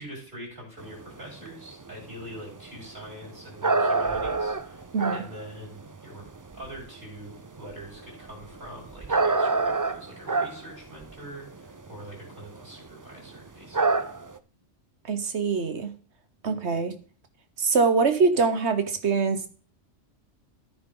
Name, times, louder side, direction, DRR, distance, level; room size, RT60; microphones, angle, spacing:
voice 1, 0.0-4.8 5.1-6.2 6.5-14.1, right 1 dB, 45° right, -3 dB, 5.6 m, -44 dB
sound 1, 0.8-6.8 7.3-12.7 13.0-13.1 13.4-13.5 13.7-14.4, right 3 dB, 30° right, 0.4 m, -27 dB
voice 2, 4.9-5.2 15.1-15.9 16.4-16.9 17.6-19.5, right 4 dB, 65° right, 9 dB, 1.4 m, -24 dB
13.5 x 7.7 x 3.9 m, 0.41 s
omnidirectional pair, 1.2 m